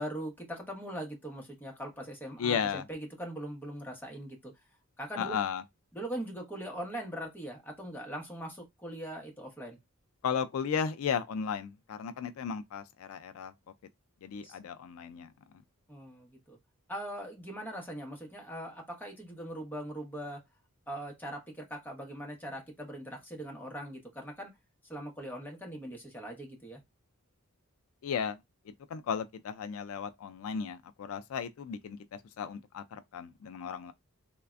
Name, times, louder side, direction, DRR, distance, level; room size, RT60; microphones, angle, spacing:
voice 1, 0.0-4.5 5.0-5.4 5.9-9.8 14.4-14.6 15.9-16.6 16.9-20.4 20.9-24.5 24.8-26.8, right 1 dB, 10° left, 0.8 m, -41 dB
voice 2, 2.4-2.8 5.2-5.6 10.2-13.5 14.2-15.3 28.0-28.4 28.7-33.9, left 7 dB, 75° left, 0.3 m, -35 dB
3.3 x 2.1 x 2.4 m
head